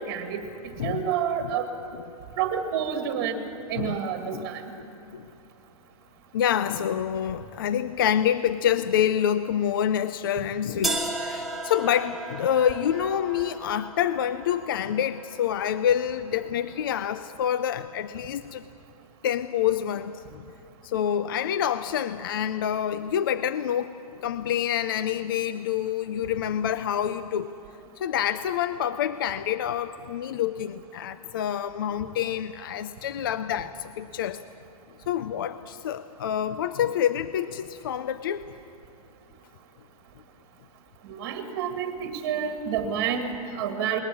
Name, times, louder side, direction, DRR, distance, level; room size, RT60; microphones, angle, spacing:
voice 1, 0.1-1.7 2.4-3.4 3.7-4.6 41.1-44.0, right 8 dB, 30° right, 5 dB, 1.9 m, -29 dB
voice 2, 6.3-18.6 19.2-20.4 20.8-23.9 24.2-27.5 28.0-34.4 35.1-38.5, left 9 dB, 35° left, 13 dB, 0.5 m, -27 dB
sound 1, 10.8-16.8, right 2 dB, ahead, 1.0 m, -35 dB
21.0 x 20.0 x 8.5 m, 2.6 s
hypercardioid pair, 170°, 20 cm